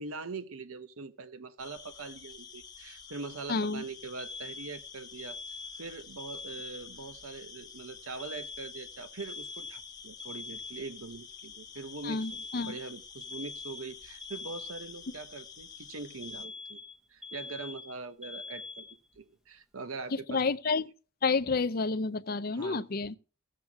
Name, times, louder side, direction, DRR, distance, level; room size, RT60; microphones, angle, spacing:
voice 1, 0.0-5.4 5.8-16.8 17.1-18.9 19.2-20.4 22.5-22.8, right 4 dB, 75° right, 0.9 m, -43 dB
sound 1, 1.6-16.5, left 6 dB, 20° left, 1.2 m, -49 dB
voice 2, 3.5-3.8 12.0-12.8 20.1-20.9 21.2-23.2, left 4 dB, 45° left, 0.5 m, -30 dB
Alarm, 4.2-7.2 8.2-11.2 12.2-15.2 16.2-19.2, left 4 dB, ahead, 0.8 m, -44 dB
15.5 x 7.6 x 3.5 m
head